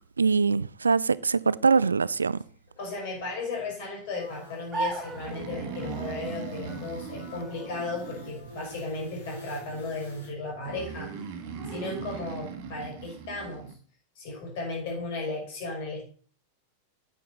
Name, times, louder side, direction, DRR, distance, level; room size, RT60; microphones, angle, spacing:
voice 1, 0.2-2.4, right 5 dB, 75° right, 0.3 m, -23 dB
voice 2, 2.8-11.2 11.7-13.8 14.2-16.0, left 3 dB, 50° left, 6.1 m, -35 dB
sound 1, 4.1-10.3, left 1 dB, 75° left, 4.2 m, -46 dB
sound 2, 4.7-12.7, right 3 dB, 20° right, 1.7 m, -40 dB
Breathing, 5.1-8.8 10.6-13.7, right 6 dB, 50° right, 1.4 m, -40 dB
9.2 x 9.1 x 4.1 m
figure-of-eight pair, 90°, 0 cm